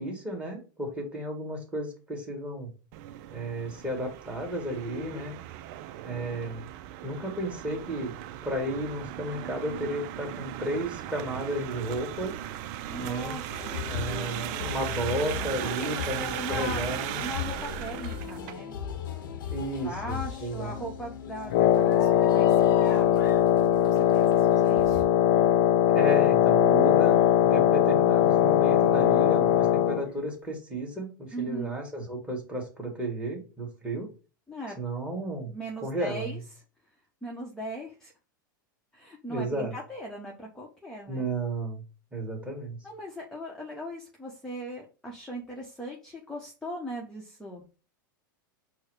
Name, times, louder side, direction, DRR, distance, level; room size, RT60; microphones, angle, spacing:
voice 1, 0.0-2.7 3.3-5.3 6.0-6.7 7.0-8.2 8.4-12.3 13.0-13.4 13.9-17.2 19.5-20.9 25.9-34.1 34.8-35.5 35.8-36.4 39.3-39.8 41.1-41.8 42.1-42.8, right 1 dB, 10° right, 0 dB, 1.7 m, -33 dB
sound 1, 2.9-18.5, right 12 dB, 55° right, 0.4 m, -37 dB
voice 2, 4.7-5.3 12.9-13.9 15.6-16.8 17.2-18.8 19.8-23.3 23.8-25.0 31.3-31.7 34.5-34.8 35.4-36.4 37.2-38.1 38.9-41.3 42.8-47.6, equal, 5° left, -2 dB, 0.9 m, -39 dB
sound 2, 13.5-25.0, left 9 dB, 80° left, 0.8 m, -38 dB
Wind instrument woodwind instrument, 21.5-30.1, left 11 dB, 55° left, 0.4 m, -21 dB
4.7 x 2.1 x 4.7 m, 0.34 s
hypercardioid pair, 115°, 11 cm